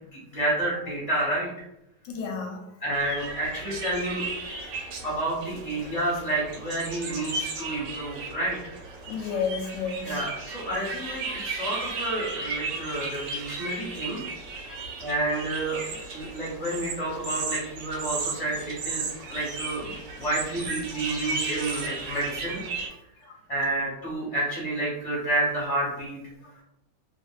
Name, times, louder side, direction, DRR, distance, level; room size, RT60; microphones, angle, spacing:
voice 1, 0.1-1.6 2.8-4.3 5.0-8.7 10.0-14.2 15.0-15.8 16.1-19.9 20.2-22.6 23.5-26.2, right 1 dB, 25° left, -8 dB, 0.8 m, -30 dB
voice 2, 2.0-2.6 9.1-10.2 14.6-14.8 19.3-19.4 23.2-23.3, left 5 dB, 85° left, 1 dB, 1.3 m, -31 dB
sound 1, 2.9-22.9, right 3 dB, 80° right, 1.2 m, -35 dB
3.0 x 2.5 x 2.4 m, 0.86 s
omnidirectional pair, 1.9 m